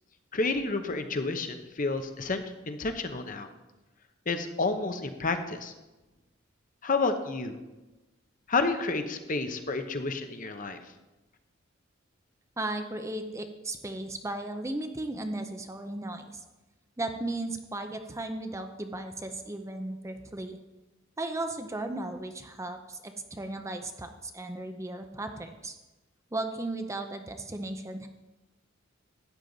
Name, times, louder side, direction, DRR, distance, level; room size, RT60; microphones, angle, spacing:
voice 1, 0.3-3.5 4.3-5.7 6.8-7.6 8.5-10.8, left 3 dB, 40° left, 7 dB, 0.9 m, -30 dB
voice 2, 12.6-16.5 17.0-20.6 21.2-25.7 26.3-28.1, right 2 dB, 15° right, 6 dB, 0.6 m, -36 dB
13.0 x 8.9 x 4.0 m, 1.1 s
head